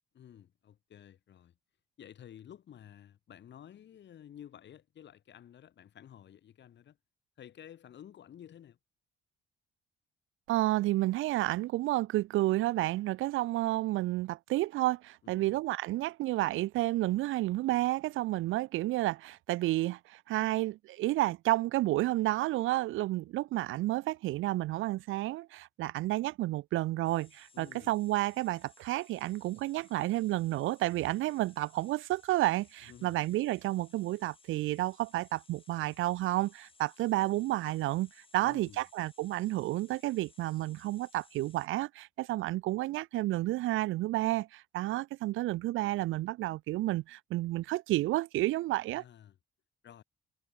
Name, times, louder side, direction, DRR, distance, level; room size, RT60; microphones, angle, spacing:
voice 1, 0.1-1.5 2.0-7.0 7.4-8.8 15.2-15.6 27.5-27.9 32.8-33.3 38.4-38.8 48.9-49.4 49.8-50.0, left 10 dB, 65° left, 3.1 m, -52 dB
voice 2, 10.5-49.0, right 17 dB, 85° right, 0.6 m, -31 dB
sound 1, 27.0-41.7, left 4 dB, 25° left, 4.5 m, -62 dB
cardioid pair, 90°, 20 cm